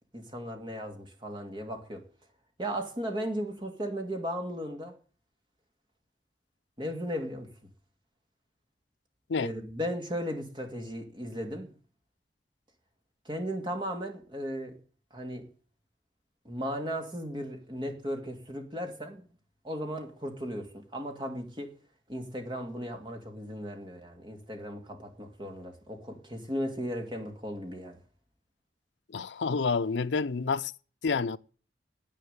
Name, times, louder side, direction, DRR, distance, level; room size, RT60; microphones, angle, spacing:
voice 1, 0.1-2.0 2.6-4.9 6.8-7.5 9.4-11.7 13.2-14.7 15.1-15.4 16.4-19.3 19.6-21.7 22.1-28.0, equal, 25° right, 2.4 m, -36 dB
voice 2, 29.1-30.7 31.0-31.4, left 4 dB, 75° left, 0.6 m, -28 dB
10.0 x 8.9 x 8.6 m
head